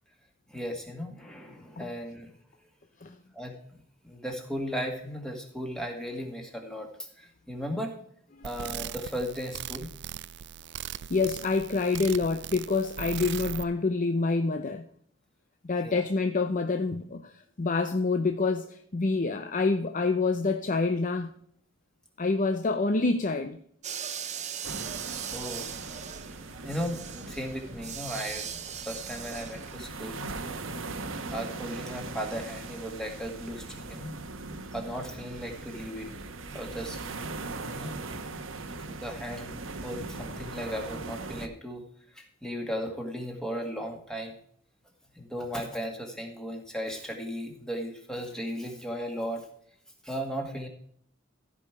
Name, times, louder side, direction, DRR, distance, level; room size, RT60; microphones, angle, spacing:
voice 1, 0.5-2.3 3.3-3.5 4.0-7.9 8.4-9.9 15.8-16.0 25.3-25.7 26.6-28.5 28.8-30.3 31.3-34.2 34.7-36.1 36.5-37.0 37.6-37.9 38.8-39.5 39.8-41.8 42.1-44.4 45.2-49.4 50.0-50.7, equal, 5° left, 2.0 m, -36 dB
sound 1, 8.4-13.6, right 10 dB, 60° right, 0.4 m, -39 dB
voice 2, 11.1-14.8 15.7-17.3 17.6-21.3 22.2-23.6, left 3 dB, 40° left, 0.6 m, -27 dB
sound 2, 23.8-29.8, right 8 dB, 35° right, 0.8 m, -39 dB
sound 3, 24.6-41.5, right 3 dB, 75° right, 1.1 m, -40 dB
15.0 x 5.4 x 4.7 m
head